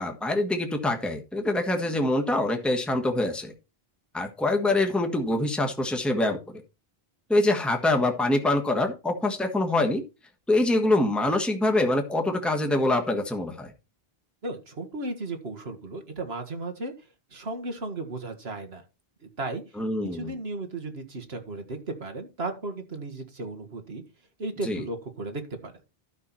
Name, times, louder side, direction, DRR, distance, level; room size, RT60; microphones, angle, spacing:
voice 1, 0.0-3.5 4.1-6.6 7.3-10.0 10.5-13.7 19.8-20.3 24.6-24.8, left 2 dB, ahead, 3 dB, 1.4 m, -25 dB
voice 2, 14.4-16.9 17.3-18.8 19.2-19.6 20.1-24.0 24.4-25.7, right 2 dB, 80° right, 6 dB, 2.0 m, -35 dB
12.5 x 5.8 x 4.4 m, 0.29 s
omnidirectional pair, 1.0 m